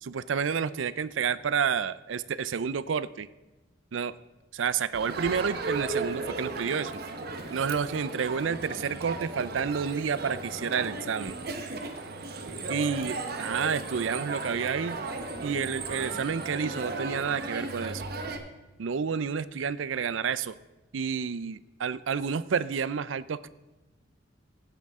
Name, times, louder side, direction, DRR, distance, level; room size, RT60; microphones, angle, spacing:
voice 1, 0.0-3.3 3.9-4.1 4.5-6.9 7.5-11.4 12.7-15.0 15.4-18.0 18.8-20.5 20.9-23.5, right 6 dB, 85° right, 17 dB, 0.5 m, -30 dB
Crowd, 4.9-18.4, right 3 dB, 55° right, 1.1 m, -35 dB
16.5 x 9.6 x 3.6 m, 1.1 s
head